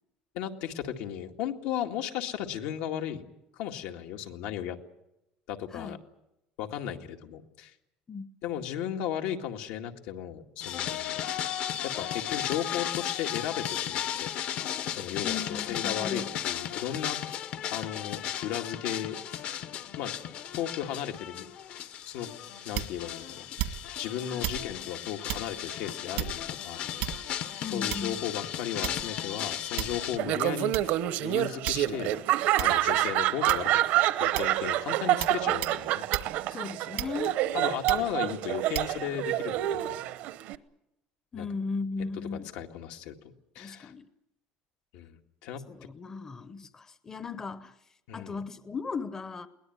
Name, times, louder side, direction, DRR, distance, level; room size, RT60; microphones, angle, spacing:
voice 1, 0.3-3.2 3.5-4.8 5.5-6.0 6.6-7.7 8.4-11.2 11.8-14.3 14.9-17.4 17.7-19.2 20.0-20.1 20.5-21.5 22.1-22.3 22.6-27.4 27.7-32.2 32.6-33.8 34.2-36.0 37.5-40.0 41.4-41.5 42.5-43.1 43.6-43.9 44.9-45.6 48.1-48.4, left 10 dB, 80° left, 2.1 m, -35 dB
sound 1, 10.6-30.2, left 10 dB, 50° left, 1.0 m, -35 dB
voice 2, 15.2-16.3 24.3-24.5 27.6-28.2 36.5-37.4 41.3-42.5 43.6-44.1 45.7-47.7 48.1-49.5, left 4 dB, 15° left, 0.8 m, -37 dB
sound 2, 22.7-23.1 23.6-24.0 24.4-24.7 25.3-25.5 26.2-26.5 27.0-27.4 27.9-28.2 28.8-29.2 29.8-30.1 30.7-30.9 31.7-32.1 32.6-32.8 33.5-33.8 34.4-34.6 35.2-35.4 35.6-35.8 36.1-36.3 37.0-37.4 37.9-38.1 38.7-38.9, right 15 dB, 90° right, 1.9 m, -34 dB
Laughter, 30.2-40.5, right 14 dB, 65° right, 0.9 m, -27 dB
22.0 x 19.0 x 9.5 m
cardioid pair, 155°, 3 cm